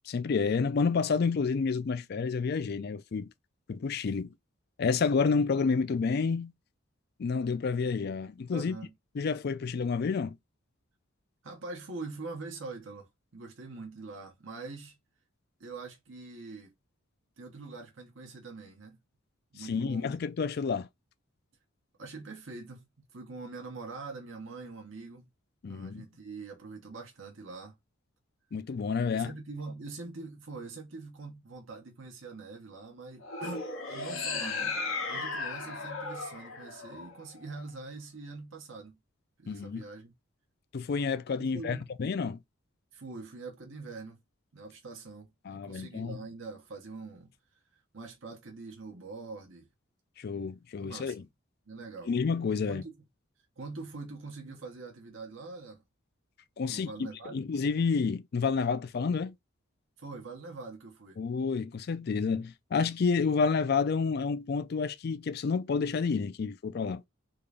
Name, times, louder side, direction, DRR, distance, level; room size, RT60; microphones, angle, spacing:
voice 1, 0.1-3.3 3.7-4.3 4.8-6.5 7.2-8.8 9.2-10.4 19.6-20.9 25.6-26.0 28.5-29.3 39.5-39.8 40.7-42.4 45.5-46.2 50.2-51.2 52.1-52.8 56.6-56.9 57.3-59.3 61.2-67.0, left 5 dB, 50° left, 0.4 m, -29 dB
voice 2, 8.5-8.9 11.4-15.0 15.6-16.7 17.4-19.0 19.5-20.1 22.0-22.8 23.1-25.3 25.7-27.7 29.1-34.8 35.1-39.0 39.4-40.1 41.4-41.9 42.9-44.2 44.5-47.3 47.9-49.7 50.8-51.3 51.7-52.1 52.7-53.0 53.6-55.8 56.6-57.4 60.0-61.2, right 3 dB, 65° right, 1.1 m, -44 dB
sound 1, 33.2-37.6, left 4 dB, 85° left, 1.6 m, -36 dB
3.8 x 2.5 x 3.3 m
head